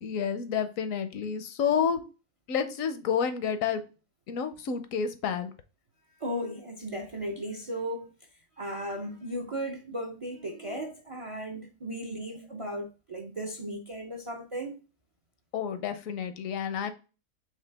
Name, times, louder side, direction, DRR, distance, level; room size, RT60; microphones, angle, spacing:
voice 1, 0.0-2.0 2.5-3.8 4.3-5.5 15.5-16.9, left 7 dB, 80° left, 1.1 m, -29 dB
voice 2, 6.2-8.1 8.6-14.8, equal, 45° right, 0.4 m, -36 dB
4.9 x 3.2 x 3.3 m
omnidirectional pair, 1.4 m